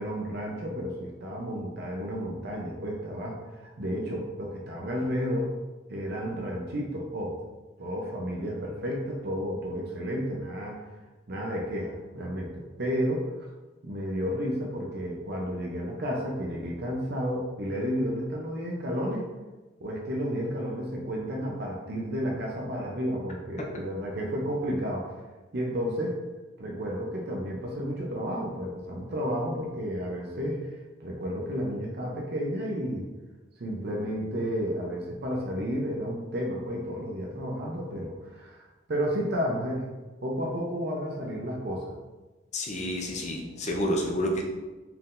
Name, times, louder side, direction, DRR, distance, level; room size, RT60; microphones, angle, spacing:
voice 1, 0.0-5.5 5.9-7.4 7.8-10.8 11.3-13.5 13.8-19.3 19.8-25.2 25.5-26.2 26.6-33.1 33.6-39.9 40.2-41.9, equal, 55° right, -1 dB, 0.7 m, -32 dB
voice 2, 42.5-44.4, equal, 35° left, 1 dB, 0.6 m, -29 dB
4.5 x 3.7 x 2.5 m, 1.2 s
head